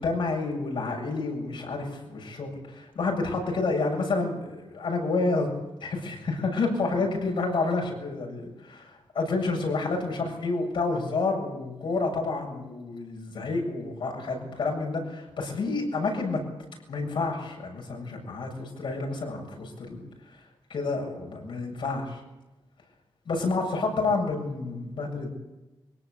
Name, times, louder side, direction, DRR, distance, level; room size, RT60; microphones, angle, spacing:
voice 1, 0.0-5.5 5.8-16.4 16.9-20.0 20.7-22.2 23.3-25.3, left 3 dB, 70° left, 1 dB, 7.5 m, -29 dB
23.5 x 17.5 x 8.6 m, 1.0 s
wide cardioid pair, 175°, 9 cm